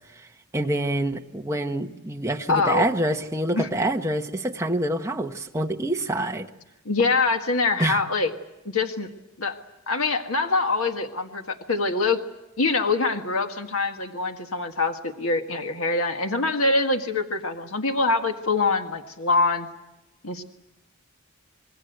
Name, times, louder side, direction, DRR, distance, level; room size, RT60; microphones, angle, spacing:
voice 1, 0.5-6.5 7.8-8.0, right 1 dB, 15° right, 3 dB, 1.3 m, -26 dB
voice 2, 2.5-2.8 3.5-3.7 6.9-8.3 8.7-9.1 9.4-9.6 9.9-12.2 12.6-19.7 20.2-20.4, left 3 dB, 75° left, 5 dB, 1.7 m, -24 dB
27.5 x 21.0 x 8.1 m, 0.95 s
head